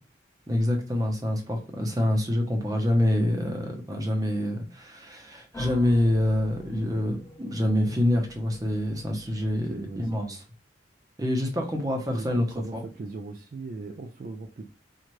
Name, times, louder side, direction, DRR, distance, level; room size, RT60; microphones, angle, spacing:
voice 1, 0.5-10.4 11.2-12.5 12.7-12.8, left 1 dB, 20° right, 3 dB, 0.7 m, -26 dB
sound 1, 5.5-10.2, left 1 dB, 15° left, 0.8 m, -46 dB
voice 2, 9.7-10.4 12.1-14.7, right 3 dB, 45° right, 6 dB, 0.3 m, -39 dB
4.5 x 2.4 x 3.0 m, 0.33 s
head